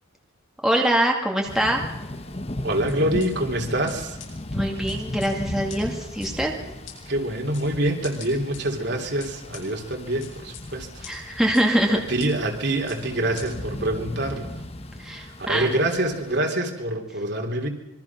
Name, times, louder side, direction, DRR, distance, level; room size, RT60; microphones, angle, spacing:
voice 1, 0.6-1.8 4.5-6.5 11.1-12.0 15.0-15.7, right 1 dB, ahead, 0 dB, 2.2 m, -23 dB
Thunder / Rain, 1.4-16.4, left 1 dB, 30° left, 1.1 m, -36 dB
voice 2, 2.6-4.2 7.1-11.4 11.9-14.5 15.4-17.7, right 1 dB, 50° right, 3 dB, 3.1 m, -26 dB
sound 1, 2.9-3.3 3.9-4.0 4.2-4.3 4.9-5.3 5.7-5.8 6.2-6.3 6.9-7.0 7.5-7.7 8.0-8.6 9.2-9.6 10.2-10.6 11.0-11.1 11.5-11.6 12.2-12.3 12.9-13.0 13.4-13.5, left 10 dB, 60° left, 7.9 m, -41 dB
26.0 x 22.5 x 6.0 m, 0.94 s
head